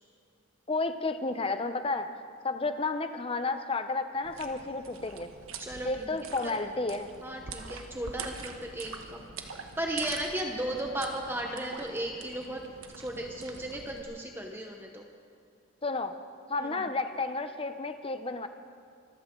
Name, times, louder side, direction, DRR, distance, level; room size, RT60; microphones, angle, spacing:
voice 1, 0.7-2.1 2.4-5.3 5.8-7.1 15.8-16.2 16.5-18.5, left 3 dB, 25° left, 9 dB, 0.7 m, -31 dB
sound 1, 4.2-14.0, right 5 dB, 80° right, 1.2 m, -44 dB
voice 2, 5.6-6.1 6.4-6.5 7.2-12.6 13.0-15.0 16.6-16.7, right 1 dB, 10° right, 1 dB, 1.0 m, -35 dB
25.5 x 14.5 x 3.8 m, 2.4 s
head